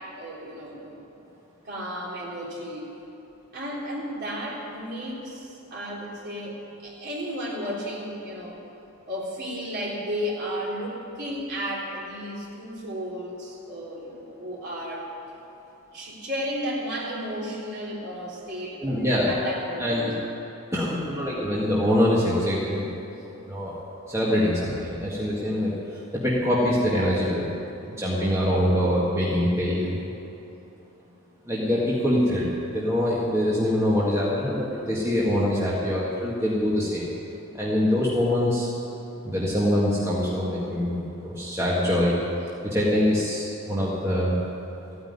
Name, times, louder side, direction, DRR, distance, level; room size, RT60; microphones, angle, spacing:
voice 1, 0.1-1.0 1.6-2.9 3.5-8.6 9.1-15.0 15.9-20.1, equal, 50° right, -5 dB, 3.7 m, -33 dB
voice 2, 18.8-19.3 19.8-20.1 20.7-22.9 23.5-23.8 24.1-25.7 26.1-27.5 28.0-30.0 31.5-37.1 37.5-38.7 39.2-42.2 42.6-44.4, left 1 dB, 15° right, -6 dB, 1.8 m, -24 dB
14.5 x 9.5 x 9.6 m, 2.9 s
head